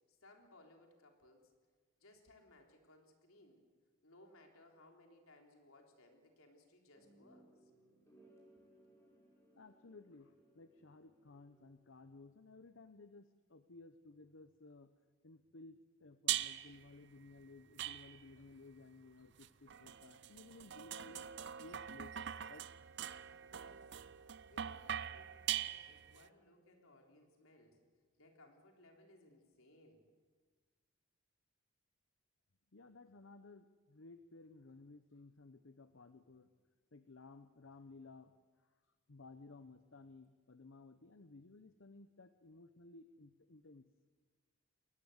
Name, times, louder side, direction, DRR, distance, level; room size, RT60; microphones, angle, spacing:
voice 1, 0.1-1.5 2.0-3.6 4.0-7.7 8.5-8.6 23.4-23.9 24.5-27.8 28.2-30.1, left 1 dB, 85° left, 2 dB, 3.7 m, -64 dB
sound 1, 6.9-12.1, right 1 dB, 15° left, 6.0 m, -67 dB
voice 2, 9.6-14.9 15.2-21.3 21.6-22.6 32.7-36.5 36.9-38.3 38.6-38.8 39.1-43.9, left 3 dB, 65° left, 10 dB, 0.8 m, -57 dB
sound 2, 16.3-16.8 17.8-18.5 19.4-26.2, right 11 dB, 55° right, 0.6 m, -42 dB
22.0 x 18.5 x 8.0 m, 1.5 s
head